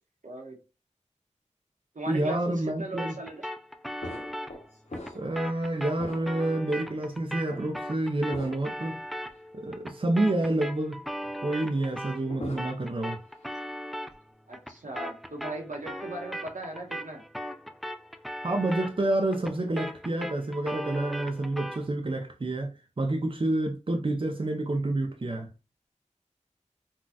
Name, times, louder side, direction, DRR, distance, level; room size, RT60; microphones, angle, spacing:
voice 1, 0.2-0.6 1.9-3.5 14.5-17.2, right 2 dB, 85° right, 1.0 m, -38 dB
voice 2, 2.1-3.2 5.1-9.0 9.5-11.0 11.4-13.2 18.4-25.5, right 2 dB, 45° right, 0.6 m, -28 dB
sound 1, 3.0-12.3 12.6-21.9, equal, ahead, 0.3 m, -39 dB
sound 2, 4.0-5.5 5.9-6.6 7.5-7.7 8.3-8.8 9.3-9.4 12.0-13.0 13.3-13.7, left 1 dB, 60° left, 0.7 m, -42 dB
4.0 x 2.3 x 2.3 m
wide cardioid pair, 40°, 13 cm